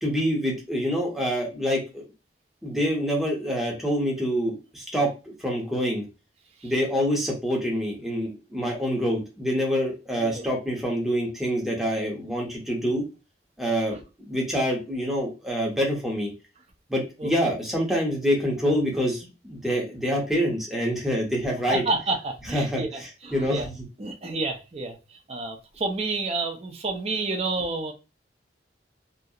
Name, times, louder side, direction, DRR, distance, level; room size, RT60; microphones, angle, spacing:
voice 1, 0.0-2.1 2.6-6.0 6.6-13.0 13.6-14.0 14.3-16.3 16.9-21.8 22.5-23.7, equal, ahead, 0.7 m, -26 dB
voice 2, 10.2-10.5 13.9-14.0 17.2-17.5 21.7-23.7 24.0-25.0 25.3-27.9, right 3 dB, 35° right, 0.5 m, -30 dB
2.4 x 2.0 x 2.7 m
head